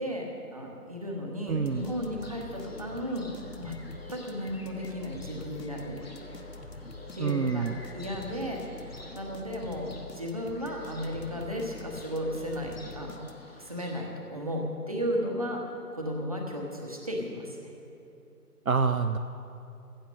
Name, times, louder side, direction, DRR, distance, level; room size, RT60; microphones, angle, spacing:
voice 1, 0.0-3.3 3.6-3.7 4.1-6.0 7.1-7.7 7.9-13.2 13.6-17.7, equal, 25° right, 0 dB, 1.1 m, -34 dB
sound 1, 1.5-13.7, left 2 dB, 85° left, 1.4 m, -45 dB
voice 2, 1.5-1.9 7.2-7.8 18.7-19.2, right 5 dB, 60° right, 9 dB, 0.6 m, -27 dB
sound 2, 1.7-14.0, left 2 dB, 40° left, 1.4 m, -52 dB
15.5 x 9.2 x 6.4 m, 2.7 s
figure-of-eight pair, 160°, 47 cm